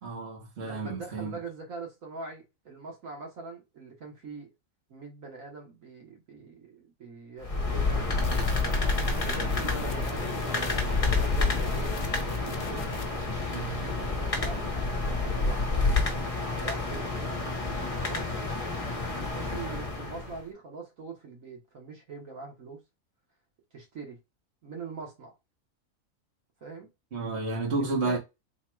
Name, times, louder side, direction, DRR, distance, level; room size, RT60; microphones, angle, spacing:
voice 1, 0.0-1.4 13.5-13.9 27.1-28.2, right 3 dB, 50° right, 1.5 m, -31 dB
voice 2, 0.6-4.5 4.9-8.8 9.2-12.2 12.5-13.3 13.8-16.1 16.5-17.0 17.9-18.4 18.7-22.8 23.7-24.2 24.6-25.3 26.6-26.9 27.8-28.2, right 4 dB, 70° right, 1.6 m, -43 dB
sound 1, 7.4-20.4, left 3 dB, 30° left, 1.0 m, -29 dB
sound 2, 8.2-13.3, left 6 dB, 50° left, 0.6 m, -42 dB
3.7 x 2.3 x 4.4 m
omnidirectional pair, 1.4 m